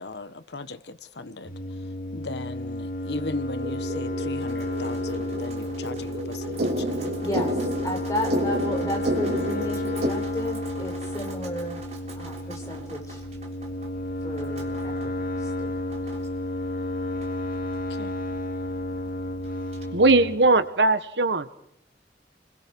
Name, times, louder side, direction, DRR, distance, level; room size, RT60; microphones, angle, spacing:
voice 1, 0.0-1.5 2.1-7.1 17.9-18.1, left 3 dB, 75° left, 13 dB, 1.1 m, -37 dB
sound 1, 1.5-20.4, left 1 dB, 50° left, 2.1 m, -31 dB
sound 2, 3.6-10.1, equal, 70° right, 3.2 m, -31 dB
Drip, 4.4-19.8, right 2 dB, 35° right, 3.7 m, -46 dB
voice 2, 7.2-11.8 12.1-13.2 14.2-15.8 19.0-19.2, left 1 dB, 20° left, 1 dB, 5.1 m, -33 dB
voice 3, 19.9-21.5, right 3 dB, 85° right, 12 dB, 1.4 m, -19 dB
29.5 x 22.0 x 4.7 m, 0.69 s
head